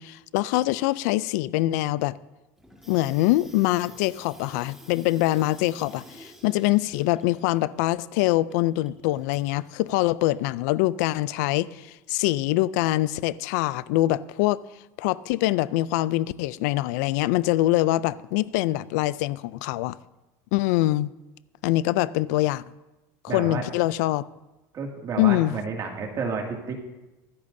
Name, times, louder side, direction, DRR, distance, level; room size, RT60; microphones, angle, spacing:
voice 1, 0.0-2.2 2.9-11.8 12.1-14.6 15.0-20.0 20.5-21.1 21.6-22.6 23.2-24.2 25.2-25.6, left 17 dB, 80° left, 0.4 m, -24 dB
Water tap faucet / Sink (filling or washing), 2.6-10.1, equal, 5° right, 1.8 m, -51 dB
voice 2, 23.3-23.6 24.7-26.7, right 5 dB, 40° right, 2.3 m, -31 dB
25.0 x 8.5 x 2.7 m
supercardioid pair, 120°, 9 cm